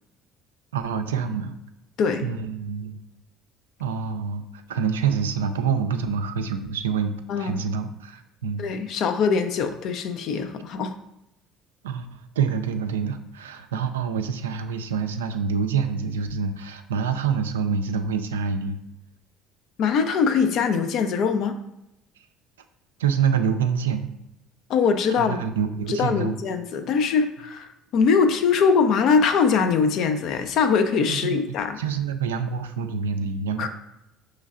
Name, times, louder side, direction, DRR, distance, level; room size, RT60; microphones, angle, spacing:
voice 1, 0.7-1.5 2.2-3.0 3.8-8.6 11.8-18.8 23.0-24.1 25.2-26.4 31.1-31.4 31.8-33.7, right 6 dB, 85° right, 7 dB, 0.3 m, -26 dB
voice 2, 2.0-2.3 7.3-7.6 8.6-10.9 19.8-21.6 24.7-25.4 25.9-31.8 33.6-33.7, left 5 dB, 60° left, 7 dB, 0.4 m, -22 dB
5.4 x 3.1 x 2.4 m, 0.86 s
hypercardioid pair, 65°, 0 cm